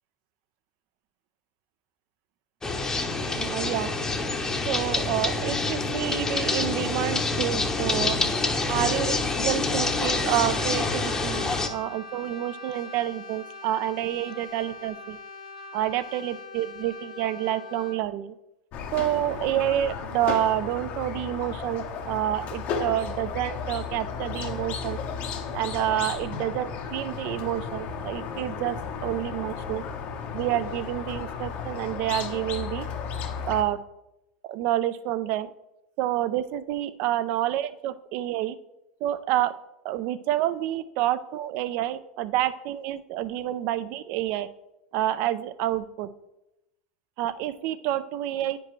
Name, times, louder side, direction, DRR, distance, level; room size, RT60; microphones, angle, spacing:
sound 1, 2.6-11.7, left 3 dB, 15° left, 0.8 m, -27 dB
voice 1, 3.3-3.9 4.6-8.2 8.7-15.2 15.7-18.3 18.9-25.0 25.5-29.8 30.3-32.9 33.5-33.8 34.4-35.5 36.0-38.6 39.0-39.5 39.8-44.5 44.9-46.1 47.2-48.6, right 13 dB, 55° right, 14 dB, 0.4 m, -28 dB
Brass instrument, 9.9-18.1, left 3 dB, 85° left, 0.6 m, -43 dB
Squeak, 18.7-33.6, left 6 dB, 50° left, 0.9 m, -34 dB
9.2 x 5.2 x 3.1 m, 0.91 s
hypercardioid pair, 90°, 4 cm